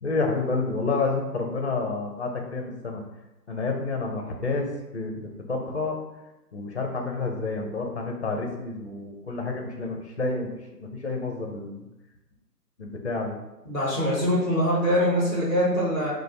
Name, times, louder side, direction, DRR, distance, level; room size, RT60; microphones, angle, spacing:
voice 1, 0.0-3.0 3.5-6.0 6.5-10.5 10.8-11.9 12.8-13.4, left 3 dB, 45° left, 2 dB, 0.6 m, -29 dB
voice 2, 13.7-16.1, equal, 5° left, -8 dB, 0.9 m, -23 dB
4.8 x 2.0 x 2.8 m, 0.99 s
figure-of-eight pair, 150°, 49 cm